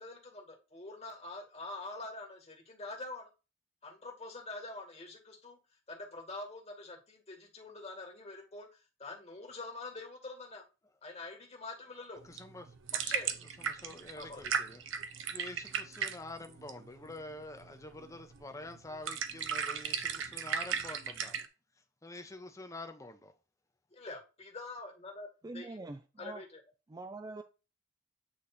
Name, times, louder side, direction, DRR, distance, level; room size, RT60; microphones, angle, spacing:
voice 1, 0.0-3.3 3.8-5.6 5.9-8.7 9.0-10.6 11.0-12.2 12.9-13.4 14.2-14.4 23.9-25.9 26.2-26.6, left 2 dB, 35° left, 1.8 m, -45 dB
voice 2, 12.2-12.7 13.6-21.4 22.0-23.3, left 2 dB, 15° left, 0.9 m, -47 dB
sound 1, 12.2-21.5, right 7 dB, 75° right, 0.8 m, -37 dB
voice 3, 25.4-26.4 26.9-27.4, right 2 dB, 20° right, 0.4 m, -44 dB
8.6 x 3.2 x 4.2 m
head